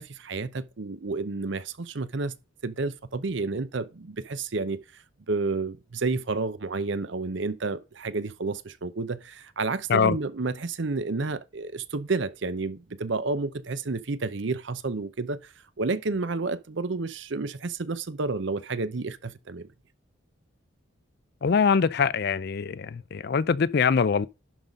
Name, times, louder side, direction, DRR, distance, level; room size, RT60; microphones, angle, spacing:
voice 1, 0.0-2.3 2.6-19.7, right 3 dB, 60° right, 0.7 m, -30 dB
voice 2, 21.4-24.3, left 6 dB, 55° left, 0.4 m, -23 dB
11.0 x 4.0 x 5.2 m
head